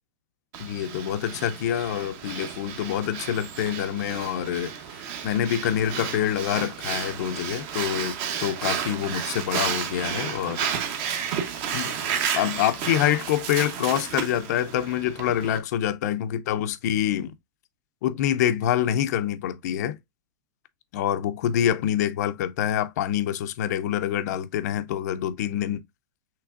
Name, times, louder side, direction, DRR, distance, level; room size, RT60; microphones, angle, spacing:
Breathing, 0.5-15.6, right 8 dB, 35° right, 0.8 m, -32 dB
voice 1, 0.6-4.7 5.2-10.6 11.7-12.0 12.3-17.3 18.0-20.0 20.9-25.8, left 10 dB, 55° left, 0.5 m, -26 dB
5.8 x 3.2 x 2.4 m
supercardioid pair, 160°, 11 cm